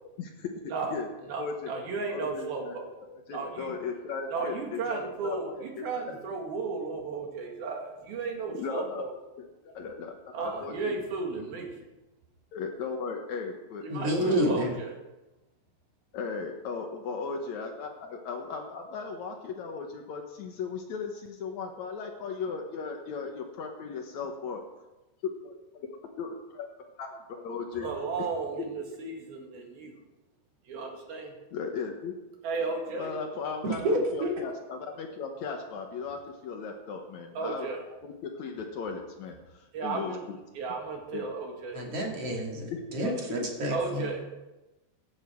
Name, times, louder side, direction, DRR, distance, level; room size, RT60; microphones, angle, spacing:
voice 1, 0.2-0.5 0.9-1.1 1.4-1.7 2.1-6.1 8.5-9.0 9.4-9.5 9.7-10.1 10.6-11.0 12.5-14.5 16.1-24.6 25.4-26.7 27.0-27.9 31.5-32.1 32.7-33.9 34.1-40.4 41.1-41.3 42.7-42.8, left 5 dB, 90° left, 3 dB, 1.6 m, -37 dB
voice 2, 1.3-2.9 3.3-3.7 4.3-9.1 10.3-11.7 13.8-15.0 27.7-29.9 30.7-31.3 32.4-33.1 37.4-37.8 39.7-40.2 40.6-41.8 43.7-44.2, right 4 dB, 60° right, 1 dB, 3.7 m, -34 dB
voice 3, 13.9-14.7 33.6-34.3 41.7-44.1, equal, 40° right, -1 dB, 3.0 m, -29 dB
16.0 x 11.5 x 4.5 m, 1.0 s
omnidirectional pair, 5.0 m